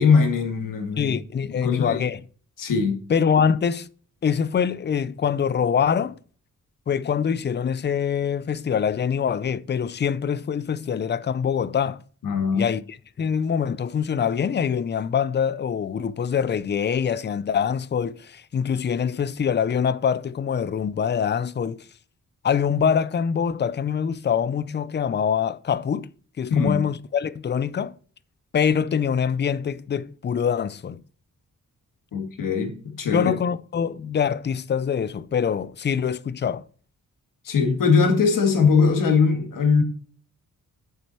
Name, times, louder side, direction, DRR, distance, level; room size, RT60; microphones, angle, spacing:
voice 1, 0.0-1.2 1.6-2.0 2.6-3.0 12.2-12.8 26.5-26.8 32.1-33.3 37.4-39.8, left 5 dB, 90° left, 2.2 m, -21 dB
voice 2, 1.0-2.2 3.1-3.9 4.2-6.2 6.9-12.0 12.5-12.8 13.2-21.8 22.4-26.1 26.4-28.0 28.5-31.0 33.1-36.7, left 7 dB, 35° left, 0.5 m, -24 dB
8.6 x 7.4 x 4.3 m
wide cardioid pair, 155°, 32 cm